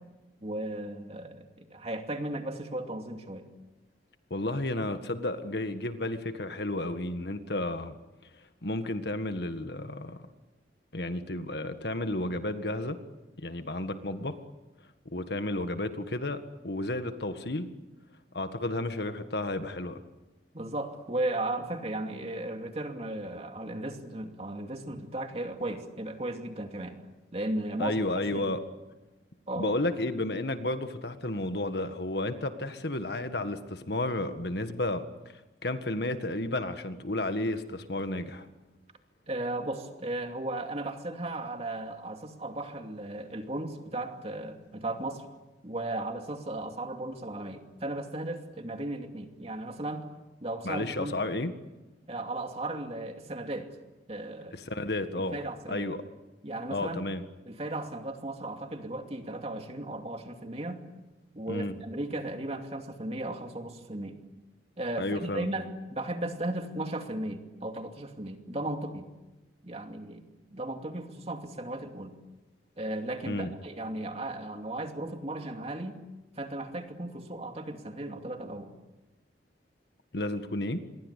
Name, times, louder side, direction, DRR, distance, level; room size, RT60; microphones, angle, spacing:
voice 1, 0.4-3.5 20.5-27.0 27.3-28.0 28.3-28.5 29.5-29.8 39.3-45.3 45.6-50.1 50.4-51.2 52.1-53.7 54.1-54.6 55.1-55.9 56.4-57.0 57.5-60.8 61.3-64.2 64.8-69.1 69.6-70.2 70.5-72.1 72.8-76.0 76.4-78.7, right 1 dB, 35° right, 4 dB, 2.7 m, -36 dB
voice 2, 4.3-7.9 8.6-10.2 10.9-13.0 13.4-14.4 15.1-17.7 18.3-20.0 27.8-28.6 29.5-38.5 50.6-51.5 54.5-55.4 55.7-56.0 56.7-57.3 61.5-61.8 65.0-65.5 73.3-73.5 80.1-80.8, left 2 dB, 60° left, 9 dB, 1.8 m, -32 dB
27.0 x 22.0 x 8.4 m, 1.1 s
head